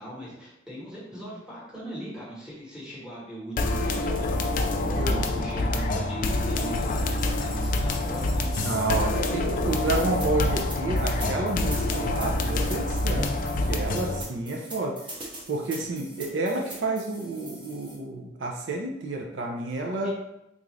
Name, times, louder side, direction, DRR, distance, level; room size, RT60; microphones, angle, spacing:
voice 1, 0.0-4.4 4.8-8.5 13.1-13.6 20.0-20.1, right 1 dB, 5° right, -7 dB, 1.1 m, -39 dB
sound 1, 3.6-14.2, left 2 dB, 45° left, 0.3 m, -26 dB
voice 2, 4.9-5.2 8.6-13.3 13.7-15.0 15.5-20.1, right 2 dB, 70° right, 1 dB, 0.5 m, -30 dB
sound 2, 6.5-9.3, left 3 dB, 20° left, 0.7 m, -42 dB
sound 3, 10.0-18.0, right 1 dB, 25° right, 0.7 m, -42 dB
3.8 x 2.4 x 3.1 m, 0.85 s
head